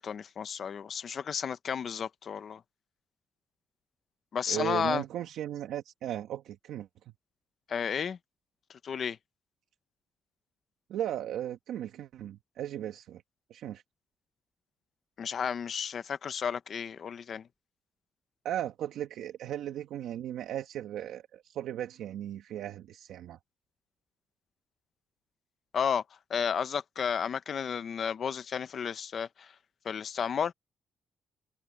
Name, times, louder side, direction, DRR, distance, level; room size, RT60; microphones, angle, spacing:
voice 1, 0.0-2.6 4.3-5.0 7.7-8.2 8.8-9.2 15.2-17.4 25.7-26.0 26.3-29.5 29.8-30.5, left 7 dB, 45° left, 0.9 m, -32 dB
voice 2, 4.5-7.1 10.9-13.2 13.5-13.8 18.4-23.4, right 11 dB, 85° right, 1.5 m, -36 dB
cardioid pair, 160°, 0 cm